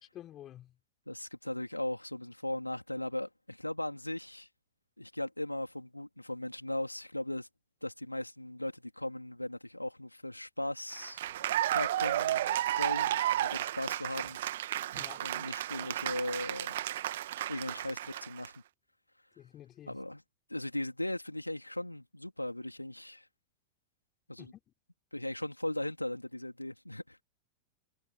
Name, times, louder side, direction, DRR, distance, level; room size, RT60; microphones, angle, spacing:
voice 1, 0.0-0.8 14.9-15.3 19.4-20.0 24.4-24.6, left 12 dB, 30° left, 3.7 m, -50 dB
voice 2, 1.1-4.5 5.0-7.5 7.8-11.2 11.7-14.4 15.2-16.8 17.5-18.5 19.9-20.2 20.5-23.3 24.3-24.5 25.1-27.2, left 1 dB, 85° left, 3.5 m, -38 dB
Cheering / Applause, 10.9-18.5, right 13 dB, 60° right, 1.9 m, -33 dB
figure-of-eight pair, 90°, 0 cm